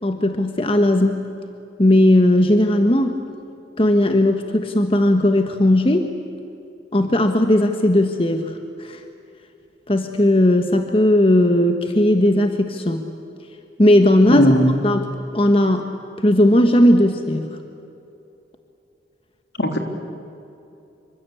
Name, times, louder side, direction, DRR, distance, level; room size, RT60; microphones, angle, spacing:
voice 1, 0.0-1.2 1.8-3.1 3.8-6.0 6.9-9.0 9.9-13.1 13.8-14.5 14.8-15.1 15.3-15.9 16.2-17.5, left 1 dB, 30° left, 6 dB, 1.4 m, -17 dB
voice 2, 14.3-14.8 19.6-19.8, equal, 75° left, 4 dB, 3.5 m, -17 dB
27.0 x 25.0 x 8.5 m, 2.8 s
head